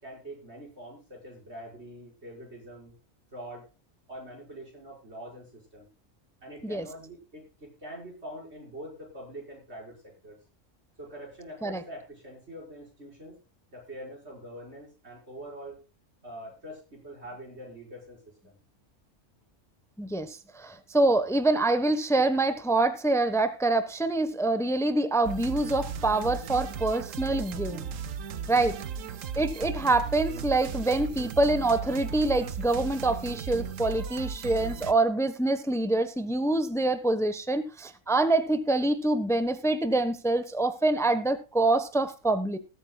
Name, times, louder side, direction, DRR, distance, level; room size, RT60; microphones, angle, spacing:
voice 1, 0.0-2.9 3.3-3.7 4.1-5.9 6.4-10.4 11.0-13.4 13.7-15.8 16.2-18.6 21.0-21.2 28.5-28.7, equal, 55° right, 6.0 m, -44 dB
voice 2, 20.0-27.9 28.5-28.8 29.4-42.6, right 2 dB, ahead, 1.0 m, -26 dB
sound 1, 25.2-34.9, right 6 dB, 90° right, 1.2 m, -36 dB
20.0 x 9.0 x 2.3 m
omnidirectional pair, 1.3 m